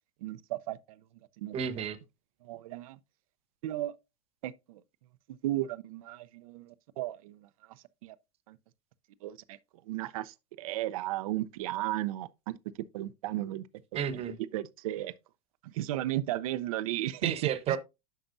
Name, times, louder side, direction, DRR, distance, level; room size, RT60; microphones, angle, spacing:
voice 1, 0.2-0.8 1.4-1.9 2.5-3.0 3.6-3.9 4.4-4.8 5.4-7.4 8.0-8.1 8.5-8.6 9.2-9.6 9.9-12.6 12.9-13.7 14.5-15.1 15.7-17.3 17.7-17.8, right 15 dB, 75° right, 0.6 m, -34 dB
voice 2, 1.5-2.0 13.9-14.4 17.2-17.8, right 8 dB, 35° right, 1.0 m, -31 dB
9.1 x 5.9 x 2.6 m
supercardioid pair, 120°, 18 cm